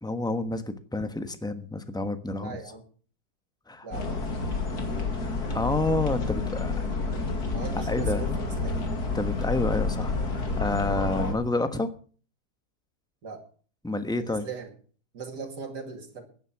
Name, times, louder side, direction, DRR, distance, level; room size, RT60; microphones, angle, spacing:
voice 1, 0.0-2.6 3.7-3.9 5.5-6.7 7.7-8.4 9.1-11.9 13.8-14.5, left 2 dB, 5° left, 9 dB, 1.0 m, -29 dB
voice 2, 2.4-2.8 3.8-4.3 7.5-8.8 13.2-13.4 14.2-14.7 15.1-16.2, right 4 dB, 90° right, 1 dB, 3.0 m, -39 dB
sound 1, 3.9-11.3, left 3 dB, 70° left, 2.8 m, -29 dB
15.0 x 9.7 x 5.9 m, 0.42 s
omnidirectional pair, 1.7 m